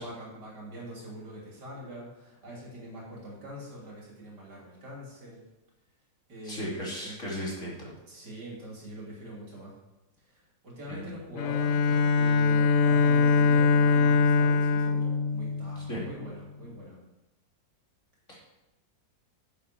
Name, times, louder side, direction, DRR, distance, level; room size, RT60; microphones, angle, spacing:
voice 1, 0.0-5.4 6.3-7.2 8.1-9.7 10.3-17.0, equal, 65° right, -4 dB, 3.6 m, -43 dB
voice 2, 6.4-7.9 10.9-11.0 15.8-16.0 18.3-18.6, equal, 40° left, -4 dB, 2.8 m, -36 dB
Bowed string instrument, 11.4-16.2, left 4 dB, 80° left, 0.6 m, -23 dB
10.0 x 7.4 x 4.5 m, 0.95 s
omnidirectional pair, 1.9 m